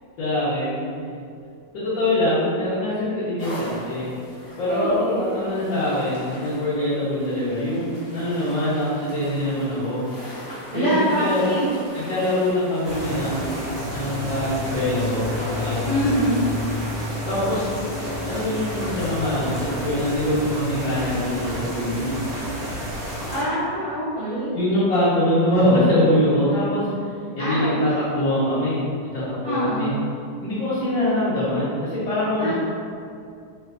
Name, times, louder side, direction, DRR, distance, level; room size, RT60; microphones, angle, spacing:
voice 1, 0.2-0.9 1.7-4.1 4.6-10.1 10.7-11.6 11.9-16.1 17.2-17.8 18.2-22.1 24.5-27.1 27.4-29.9 30.4-32.5, left 1 dB, 80° left, -14 dB, 1.6 m, -23 dB
sound 1, 3.4-19.8, equal, 55° left, 1.3 m, -41 dB
voice 2, 4.7-5.2 10.7-11.7 15.8-16.4 23.3-24.6 27.4-27.7 29.4-30.0 32.4-32.5, equal, 65° right, -15 dB, 0.4 m, -24 dB
sound 2, 12.8-23.4, left 1 dB, 35° right, 0.7 m, -30 dB
3.4 x 2.7 x 2.3 m, 2.3 s
omnidirectional pair, 2.0 m